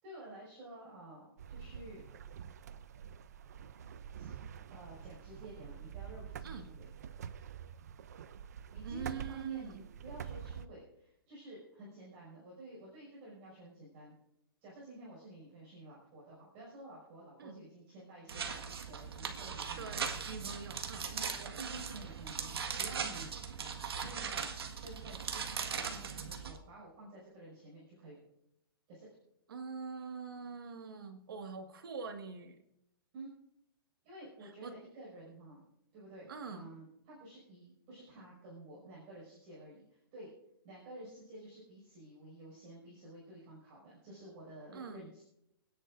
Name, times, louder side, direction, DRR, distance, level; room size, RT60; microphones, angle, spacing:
voice 1, 0.0-2.0 4.1-4.3 4.7-6.9 8.7-14.1 14.6-20.2 21.1-23.3 24.0-28.2 28.9-29.1 33.1-33.3 34.0-35.6 35.9-40.3 40.6-45.2, right 1 dB, 25° right, -6 dB, 5.9 m, -51 dB
sound 1, 1.4-10.7, right 8 dB, 45° right, 0.5 m, -46 dB
voice 2, 8.8-9.8 17.4-17.6 19.8-21.1 29.5-32.6 34.4-34.7 36.3-36.7 44.7-45.1, right 5 dB, 65° right, 6 dB, 1.9 m, -44 dB
sound 2, 18.3-26.6, right 6 dB, 90° right, 1.7 m, -39 dB
29.0 x 10.5 x 2.6 m, 0.80 s
hypercardioid pair, 175°, 13 cm